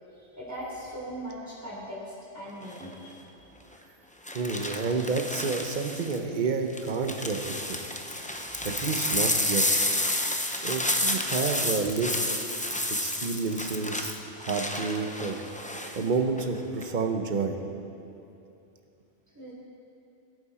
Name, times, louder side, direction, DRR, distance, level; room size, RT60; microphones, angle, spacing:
voice 1, 0.3-3.1 19.3-19.5, equal, 10° right, -7 dB, 3.8 m, -39 dB
sound 1, 2.6-2.9 4.3-6.2 6.7-16.0 16.4-16.8, left 1 dB, 10° left, 0.3 m, -30 dB
voice 2, 4.3-7.8 8.6-9.6 10.6-12.3 12.9-14.1 14.4-15.4 15.7-17.6, right 4 dB, 40° right, 5 dB, 0.9 m, -29 dB
20.5 x 8.6 x 4.3 m, 2.7 s
omnidirectional pair, 1.4 m